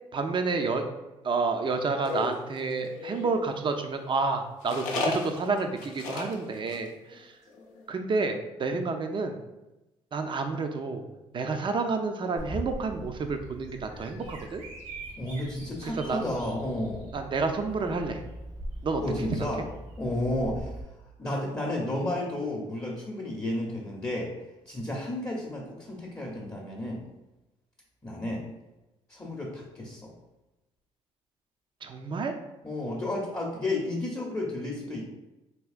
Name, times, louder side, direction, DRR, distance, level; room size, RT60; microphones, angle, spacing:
voice 1, 0.1-0.8 1.2-7.3 7.9-9.4 10.1-11.0 11.3-14.6 15.8-16.3 17.1-18.2 18.8-19.0 19.3-19.7 31.8-32.3, right 4 dB, 40° right, 6 dB, 0.5 m, -29 dB
sound 1, 2.0-3.4 4.6-6.4 6.7-6.9 7.1-7.2 7.5-7.8, left 3 dB, 80° left, 0.6 m, -34 dB
Bird vocalization bird call bird song, 12.4-20.8, right 1 dB, 75° right, 1.3 m, -41 dB
voice 2, 15.2-17.1 19.0-19.6 20.0-20.7 21.2-24.3 24.7-27.0 28.0-28.5 29.1-30.1 32.6-35.1, left 1 dB, 20° left, -2 dB, 0.7 m, -32 dB
3.4 x 2.8 x 2.4 m, 1.0 s
supercardioid pair, 70°, 13 cm